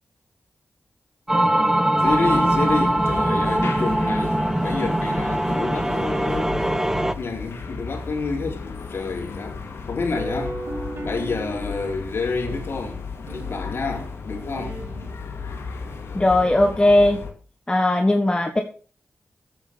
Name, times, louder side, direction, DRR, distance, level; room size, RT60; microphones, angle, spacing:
sound 1, 1.3-7.1, right 1 dB, 10° right, 1.1 m, -21 dB
voice 1, 1.9-6.5 7.2-9.6 9.9-10.6 11.0-13.0 13.3-14.8, left 4 dB, 65° left, 3.8 m, -28 dB
sound 2, 2.0-17.3, left 5 dB, 85° left, 2.4 m, -35 dB
sound 3, 10.0-12.0 12.5-15.1, right 2 dB, 70° right, 5.1 m, -36 dB
voice 2, 16.1-17.2 17.7-18.6, left 1 dB, 20° left, 1.6 m, -18 dB
10.5 x 8.5 x 7.0 m
cardioid pair, 50°, 4 cm